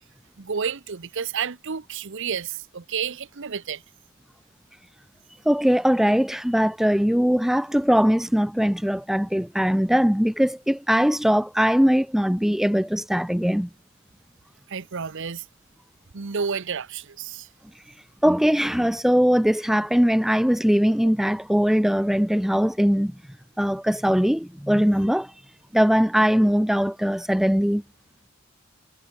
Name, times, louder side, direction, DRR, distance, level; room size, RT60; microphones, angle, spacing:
voice 1, 0.4-3.8 14.7-15.4 16.1-17.5, right 6 dB, 60° right, 0.8 m, -30 dB
voice 2, 5.5-13.7 18.2-23.1 23.6-25.3 25.7-27.8, equal, ahead, 0.5 m, -21 dB
head